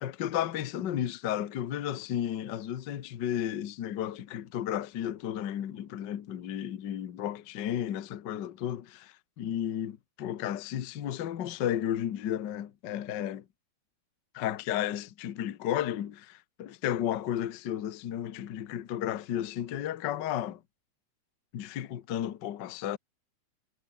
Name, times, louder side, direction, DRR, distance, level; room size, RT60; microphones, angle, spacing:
voice 1, 0.0-13.4 14.3-20.6 21.5-23.0, left 11 dB, 60° left, 1.1 m, -33 dB
omnidirectional pair, 3.6 m